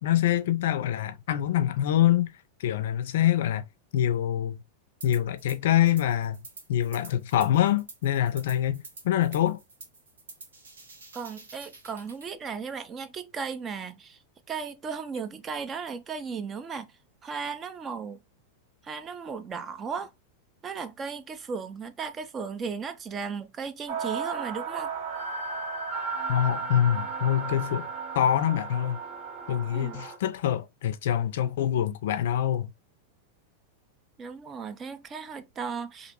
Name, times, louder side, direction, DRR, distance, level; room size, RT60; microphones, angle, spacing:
voice 1, 0.0-2.3 2.6-3.6 3.9-4.6 5.0-6.4 6.7-9.6 26.3-27.9 28.2-29.0 29.5-32.7, left 11 dB, 70° left, 0.4 m, -25 dB
sound 1, 5.0-5.6 5.9-12.3, right 3 dB, 85° right, 0.9 m, -48 dB
voice 2, 11.1-14.2 14.5-16.9 17.2-18.2 18.8-20.1 20.6-24.9 29.7-30.0 34.2-36.1, right 5 dB, 25° right, 0.4 m, -36 dB
sound 2, 23.9-30.2, right 5 dB, 45° right, 0.9 m, -34 dB
2.5 x 2.0 x 2.8 m
hypercardioid pair, 100°, 0 cm